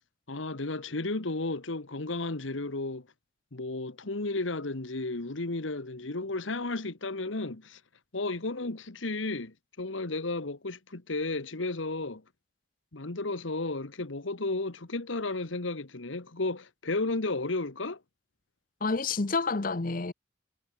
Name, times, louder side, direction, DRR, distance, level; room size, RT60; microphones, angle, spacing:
voice 1, 0.3-3.1 3.5-7.8 8.1-12.2 12.9-18.0, left 2 dB, 75° left, 1.5 m, -33 dB
voice 2, 18.8-20.1, left 3 dB, 45° left, 0.8 m, -29 dB
head